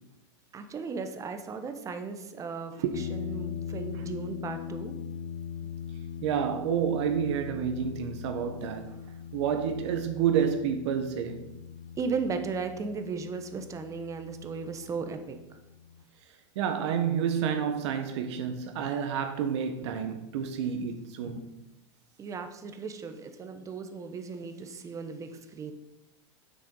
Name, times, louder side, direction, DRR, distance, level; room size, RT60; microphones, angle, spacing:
voice 1, 0.5-4.9 12.0-15.6 22.2-25.7, right 5 dB, 20° right, 0.9 m, -36 dB
sound 1, 2.9-16.0, left 7 dB, 70° left, 0.7 m, -41 dB
voice 2, 6.2-8.9 9.3-11.5 16.5-21.5, right 7 dB, 65° right, 1.1 m, -29 dB
7.6 x 6.3 x 5.4 m
supercardioid pair, 140°, 16 cm